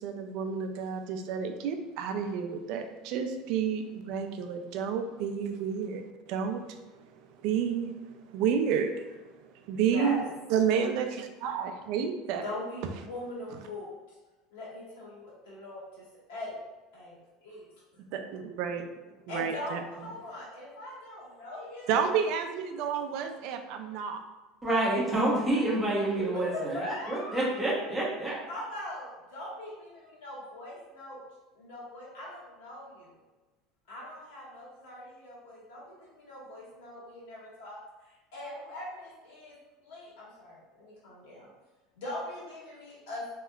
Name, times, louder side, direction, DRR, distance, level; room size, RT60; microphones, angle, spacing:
voice 1, 0.0-10.2 10.5-12.4 18.0-18.9 19.3-20.1 21.9-24.2, right 7 dB, 60° right, 6 dB, 0.3 m, -31 dB
voice 2, 9.9-10.3 12.4-14.2 14.5-16.5 16.9-17.7 17.9-18.0 19.3-19.8 20.0-22.0 26.2-26.3 26.5-27.5 28.5-31.2 31.5-33.1 33.9-41.5 42.0-43.2, left 1 dB, 80° left, -6 dB, 1.4 m, -41 dB
voice 3, 24.6-28.4, right 1 dB, 5° right, -7 dB, 1.0 m, -28 dB
3.2 x 2.8 x 2.3 m, 1.2 s
supercardioid pair, 140°, 0 cm